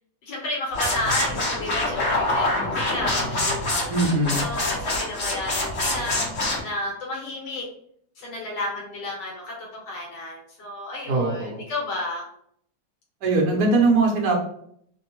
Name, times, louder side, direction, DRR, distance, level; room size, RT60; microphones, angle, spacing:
voice 1, 0.2-3.8 4.4-6.3 6.6-7.6 8.2-12.2, left 1 dB, 75° left, -2 dB, 1.4 m, -31 dB
sound 1, 0.7-6.6, left 2 dB, 55° left, 1.0 m, -25 dB
voice 2, 3.9-4.4 11.1-11.6 13.2-14.3, right 3 dB, 70° right, 0 dB, 1.1 m, -21 dB
3.3 x 2.1 x 2.9 m, 0.67 s
omnidirectional pair, 2.0 m